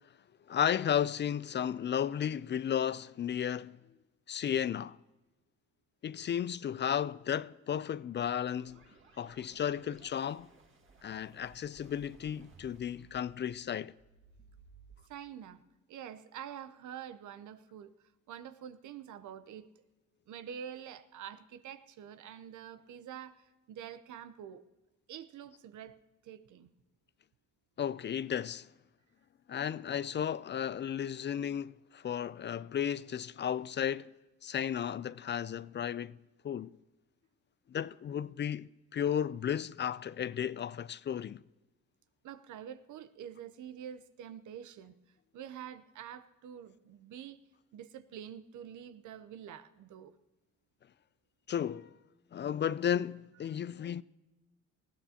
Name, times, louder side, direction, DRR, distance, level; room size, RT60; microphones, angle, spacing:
voice 1, 0.5-3.8 4.3-5.0 6.0-8.8 9.2-10.5 11.0-13.9 27.8-28.7 29.5-34.1 34.4-36.2 36.4-36.8 37.7-41.4 51.5-52.0 52.3-54.0, left 9 dB, 40° left, 0.4 m, -34 dB
sound 1, 8.0-14.9, right 3 dB, 40° right, 1.9 m, -60 dB
voice 2, 15.1-15.6 15.9-17.9 18.3-19.7 20.3-24.7 25.1-26.7 42.2-44.9 45.3-47.4 47.7-50.2, right 9 dB, 75° right, 0.9 m, -47 dB
20.0 x 15.5 x 2.9 m
cardioid pair, 90°, 30 cm